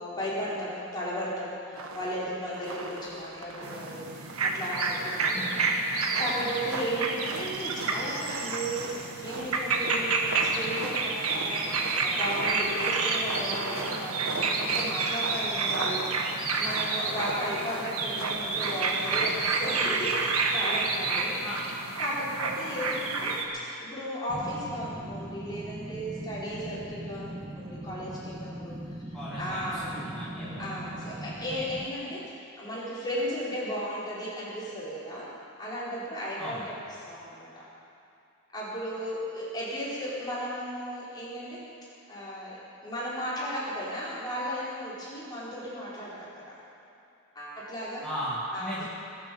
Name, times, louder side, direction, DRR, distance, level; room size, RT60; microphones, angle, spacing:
voice 1, 0.0-21.6 22.0-28.8 29.1-29.9 30.6-35.3 35.6-36.7 37.1-37.6 38.5-41.6 42.1-46.6 47.3-48.0 48.5-48.8, equal, 20° left, -9 dB, 4.8 m, -35 dB
sound 1, 1.7-2.2 2.5-4.0 4.3-5.5 6.0-20.9, right 2 dB, 75° right, 1.6 m, -38 dB
sound 2, 3.6-23.4, right 4 dB, 90° right, 1.5 m, -29 dB
sound 3, 24.3-31.9, right 1 dB, 15° right, 0.8 m, -40 dB
voice 2, 29.1-30.6 36.4-36.7 48.0-48.8, equal, ahead, -12 dB, 2.6 m, -37 dB
21.0 x 8.2 x 7.2 m, 2.7 s
head